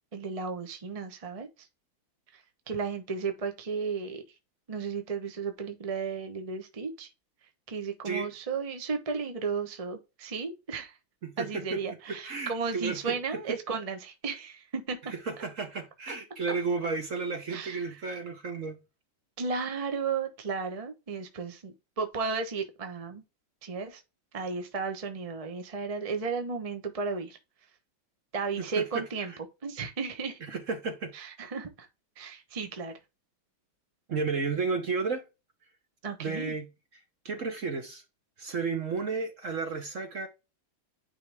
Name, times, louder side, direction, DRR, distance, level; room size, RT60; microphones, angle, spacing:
voice 1, 0.1-1.5 2.3-2.4 2.7-4.2 4.7-7.1 7.7-10.9 11.4-15.1 17.5-18.0 19.4-23.2 23.6-24.0 24.3-27.4 28.3-29.3 29.6-30.4 31.1-31.9 32.2-32.9 36.0-36.5, right 5 dB, 30° right, 0.6 m, -34 dB
voice 2, 11.2-11.8 12.1-13.2 13.5-13.6 15.1-18.8 28.6-29.4 30.4-31.1 34.1-35.2 36.2-36.7 36.9-38.0 38.4-40.3, right 4 dB, 50° right, 1.1 m, -33 dB
9.8 x 3.9 x 3.4 m
omnidirectional pair, 2.3 m